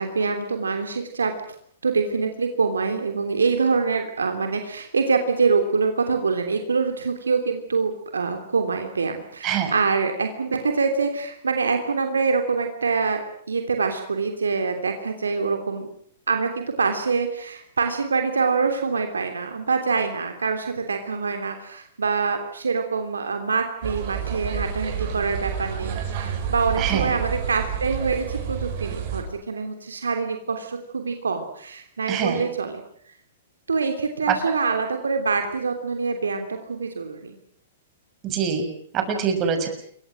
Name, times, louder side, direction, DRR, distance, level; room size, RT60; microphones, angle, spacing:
voice 1, 0.0-1.3 1.8-15.9 16.3-32.8 33.7-37.3, right 4 dB, 80° right, 5 dB, 3.1 m, -25 dB
sound 1, 23.8-29.2, right 8 dB, 50° right, 7.4 m, -29 dB
voice 2, 26.8-27.1 32.1-32.4 34.3-34.4 38.2-38.7 38.9-39.7, right 7 dB, 30° right, 6 dB, 6.8 m, -24 dB
28.5 x 23.5 x 6.4 m, 0.64 s
figure-of-eight pair, 110°, 0 cm